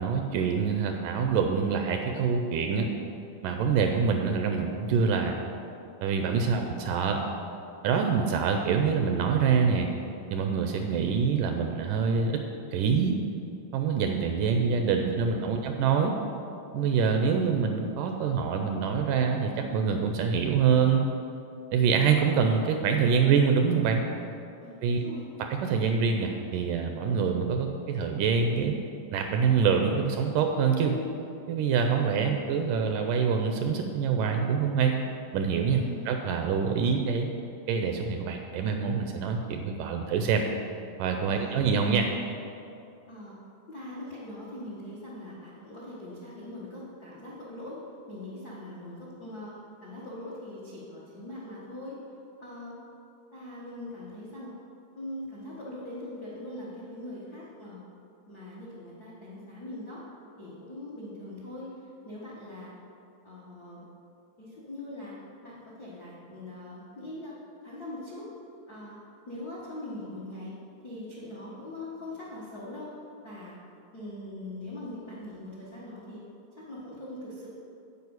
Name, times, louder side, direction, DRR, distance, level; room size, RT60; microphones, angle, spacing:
voice 1, 0.0-2.9 3.4-5.4 6.0-7.2 7.8-9.9 10.3-12.4 12.7-13.2 13.7-16.1 16.7-21.0 21.7-24.0 24.8-25.0 25.4-28.7 29.1-31.0 31.5-35.0 35.3-37.3 37.7-40.4 41.0-42.1, right 6 dB, 80° right, 4 dB, 2.0 m, -25 dB
voice 2, 6.5-6.8 15.0-15.8 24.6-25.3 35.8-36.1 41.3-41.6 43.1-43.4 43.7-47.8 48.1-49.6 49.8-52.0 52.4-52.8 53.3-54.5 54.9-57.8 58.3-60.0 60.4-62.7 63.2-63.8 64.4-65.1 65.4-67.4 67.6-68.3 68.7-69.0 69.3-70.5 70.8-72.9 73.2-73.6 73.9-76.2 76.5-77.5, left 1 dB, 65° left, -7 dB, 0.9 m, -41 dB
9.4 x 5.2 x 8.0 m, 2.7 s
omnidirectional pair, 4.1 m